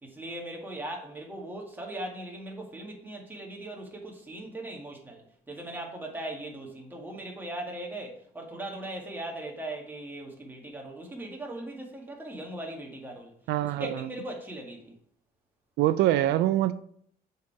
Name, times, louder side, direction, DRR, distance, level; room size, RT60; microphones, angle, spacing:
voice 1, 0.0-13.3 13.6-14.9, right 1 dB, 10° right, 2.0 m, -39 dB
voice 2, 13.5-14.1 15.8-16.7, right 13 dB, 80° right, 0.4 m, -24 dB
7.0 x 4.7 x 4.7 m
cardioid pair, 110°, 17 cm